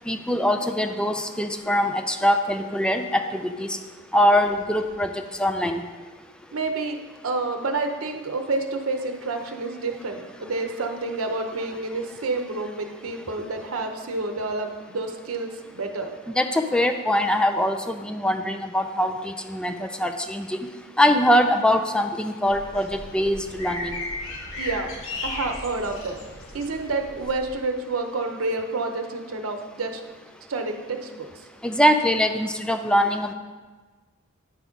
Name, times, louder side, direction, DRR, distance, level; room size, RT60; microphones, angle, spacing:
voice 1, 0.1-3.8 4.1-5.1 5.4-5.8 16.3-20.6 21.0-24.0 31.6-33.3, equal, 5° left, 6 dB, 0.4 m, -22 dB
voice 2, 6.5-7.0 7.2-16.1 24.6-24.9 25.2-26.2 26.5-30.0 30.5-31.4, right 3 dB, 85° right, 5 dB, 0.7 m, -29 dB
sound 1, 22.5-27.5, left 2 dB, 70° left, 1.4 m, -36 dB
9.6 x 3.7 x 5.2 m, 1.4 s
head